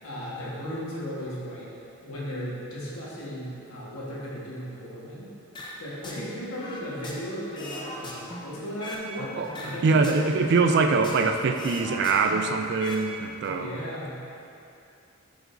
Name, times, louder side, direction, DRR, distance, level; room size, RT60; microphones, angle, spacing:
voice 1, 0.0-1.7 2.0-5.3 5.8-10.1 13.5-14.2, equal, 80° left, -6 dB, 1.5 m, -36 dB
sound 1, 5.6-6.2 6.5-9.1 9.4-11.3 11.6-13.0 13.3-13.5, left 1 dB, 20° left, 0.5 m, -39 dB
voice 2, 9.4-13.7, right 4 dB, 50° right, 6 dB, 0.3 m, -23 dB
7.7 x 5.0 x 2.6 m, 2.6 s
head